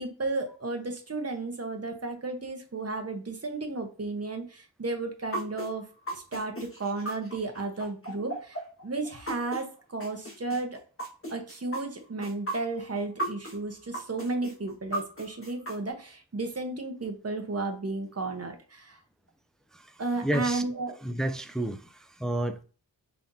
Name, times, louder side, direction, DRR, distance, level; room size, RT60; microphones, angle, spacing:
voice 1, 0.0-5.8 6.1-10.8 11.3-19.0 20.0-21.0, right 3 dB, 30° right, 1.0 m, -33 dB
sound 1, 5.3-9.6 10.0-13.6 13.9-15.7, right 1 dB, 25° left, 1.5 m, -35 dB
voice 2, 20.2-20.6 21.0-22.6, right 1 dB, ahead, 0.3 m, -30 dB
5.5 x 3.3 x 2.7 m
wide cardioid pair, 80°, 47 cm